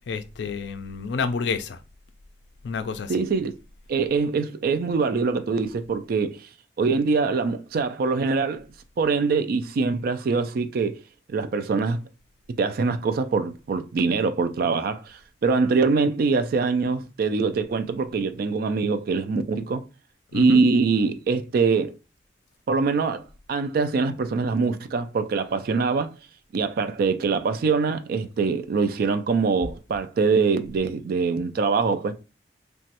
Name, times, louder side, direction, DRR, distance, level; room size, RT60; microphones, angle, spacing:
voice 1, 0.1-1.8 2.6-3.2 20.3-20.6, left 5 dB, 65° left, 0.3 m, -29 dB
voice 2, 3.1-3.5 3.9-6.5 6.8-8.7 9.0-10.9 11.3-12.0 12.5-19.8 20.3-21.9 22.7-26.1 26.5-32.1, right 4 dB, 55° right, 0.3 m, -23 dB
3.0 x 2.2 x 2.8 m
head